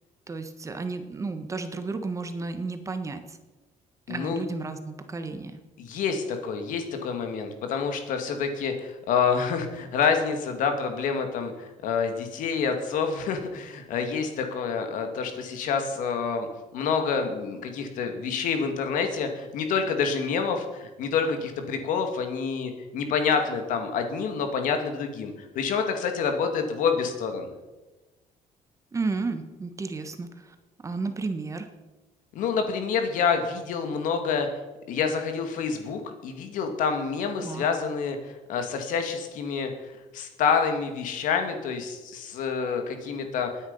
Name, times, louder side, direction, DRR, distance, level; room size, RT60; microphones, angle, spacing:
voice 1, 0.3-3.4 4.1-5.6 28.9-30.5 30.8-31.7 37.4-37.6, right 3 dB, 25° right, 8 dB, 1.3 m, -32 dB
voice 2, 4.1-4.4 5.8-16.5 16.7-27.5 32.3-34.5 34.9-39.7 40.1-43.5, left 6 dB, 75° left, 6 dB, 2.4 m, -27 dB
19.0 x 9.7 x 5.6 m, 1.1 s
cardioid pair, 135°, 14 cm